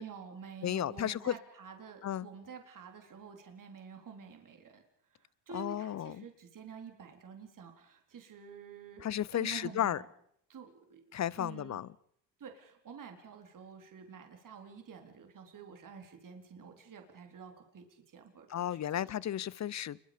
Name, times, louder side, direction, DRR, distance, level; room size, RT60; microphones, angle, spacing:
voice 1, 0.0-4.8 5.1-10.1 10.5-11.0 11.4-11.8 12.4-19.0, right 6 dB, 40° right, 4.1 m, -49 dB
voice 2, 0.6-1.4 2.0-2.3 5.5-6.3 9.0-10.0 11.1-11.9 18.5-20.0, left 11 dB, 35° left, 0.8 m, -34 dB
28.5 x 22.5 x 5.3 m
hypercardioid pair, 70°, 49 cm